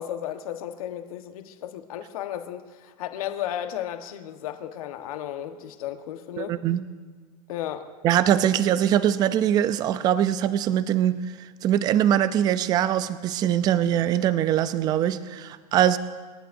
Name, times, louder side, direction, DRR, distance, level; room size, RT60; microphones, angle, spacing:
voice 1, 0.0-6.6 7.5-7.9, left 11 dB, 60° left, 7 dB, 1.3 m, -34 dB
voice 2, 6.4-6.8 8.0-11.2 11.6-16.0, right 10 dB, 20° right, 14 dB, 0.4 m, -22 dB
27.5 x 11.0 x 2.6 m, 1.5 s
supercardioid pair, 150°, 21 cm